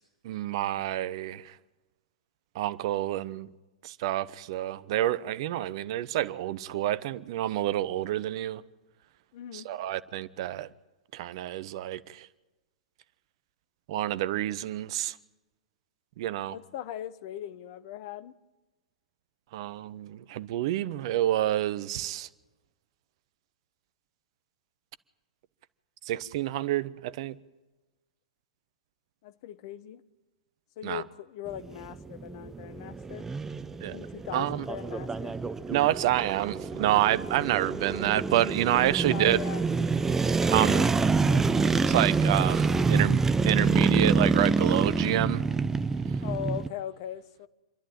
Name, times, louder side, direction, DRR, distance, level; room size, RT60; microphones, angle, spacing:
voice 1, 0.2-1.5 2.5-3.5 3.8-8.6 9.5-10.7 11.1-12.3 13.9-15.1 16.2-16.6 19.5-22.3 26.1-27.4 30.8-31.0 33.8-34.0 34.3-34.6 35.7-39.4 40.5-40.9 41.9-45.4, right 13 dB, 50° right, 0.9 m, -28 dB
voice 2, 9.3-9.7 16.5-18.4 29.2-30.0 30.8-33.3 33.9-35.3 39.1-39.8 40.6-41.5 46.2-47.5, left 11 dB, 50° left, 1.0 m, -39 dB
sound 1, 31.5-46.7, right 4 dB, 10° right, 0.7 m, -27 dB
27.5 x 11.5 x 8.9 m
figure-of-eight pair, 105°, 3 cm